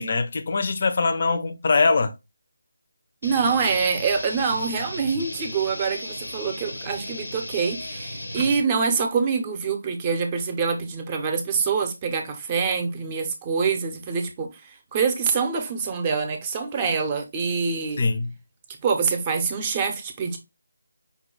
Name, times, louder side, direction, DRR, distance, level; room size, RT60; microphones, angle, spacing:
voice 1, 0.0-2.1 18.0-18.3, left 4 dB, 45° left, 0.5 m, -22 dB
sound 1, 3.2-8.6, left 1 dB, 85° left, 0.8 m, -35 dB
voice 2, 3.2-18.0 18.8-20.4, right 5 dB, 20° right, 0.6 m, -25 dB
5.1 x 2.2 x 3.1 m
figure-of-eight pair, 160°, 0 cm